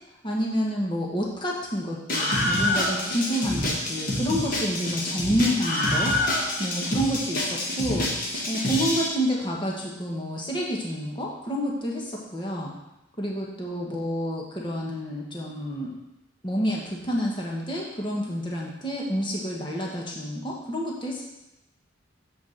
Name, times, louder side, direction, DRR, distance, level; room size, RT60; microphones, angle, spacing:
voice 1, 0.2-12.7 13.2-16.0 16.4-21.3, equal, 25° left, -2 dB, 1.4 m, -29 dB
Screaming, 2.1-9.1, left 1 dB, 45° left, 1.4 m, -27 dB
8.1 x 4.7 x 6.6 m, 0.91 s
head